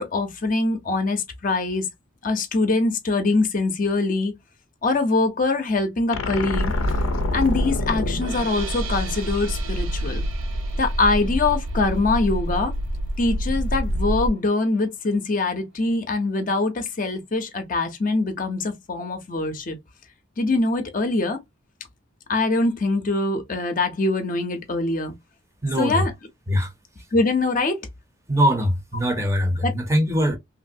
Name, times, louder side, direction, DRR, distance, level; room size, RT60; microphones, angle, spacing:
voice 1, 0.0-1.9 2.2-4.3 4.8-7.0 7.3-10.2 10.8-12.7 13.2-19.8 20.4-21.4 22.3-25.1 25.8-26.1 27.1-27.8 29.6-29.7, left 3 dB, 40° left, 0.6 m, -23 dB
sound 1, 6.1-9.5, left 4 dB, 85° left, 0.5 m, -30 dB
sound 2, 6.5-14.3, equal, 60° right, 0.5 m, -27 dB
sound 3, 8.2-14.4, right 6 dB, 90° right, 0.8 m, -40 dB
voice 2, 25.6-26.1 26.5-26.7 28.3-30.4, equal, 15° right, 0.6 m, -22 dB
3.1 x 2.6 x 2.6 m
head